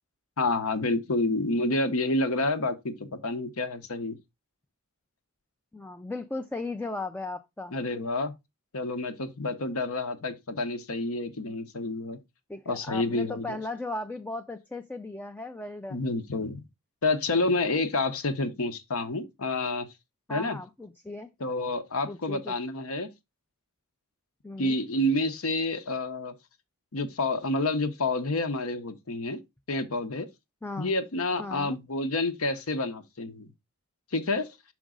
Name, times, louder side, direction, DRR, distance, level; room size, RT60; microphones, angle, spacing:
voice 1, 0.4-4.2 7.7-8.3 8.7-12.2 12.7-13.6 15.9-16.6 17.0-19.9 20.3-20.6 21.4-23.1 24.6-26.3 26.9-29.4 29.7-30.3 30.8-33.5 34.1-34.5, left 2 dB, 70° left, 0.9 m, -29 dB
voice 2, 5.7-7.8 12.5-16.0 20.3-21.3 22.1-22.6 24.4-24.8 30.6-31.0 31.4-31.8, left 2 dB, 10° left, 0.3 m, -37 dB
6.0 x 5.1 x 3.7 m
head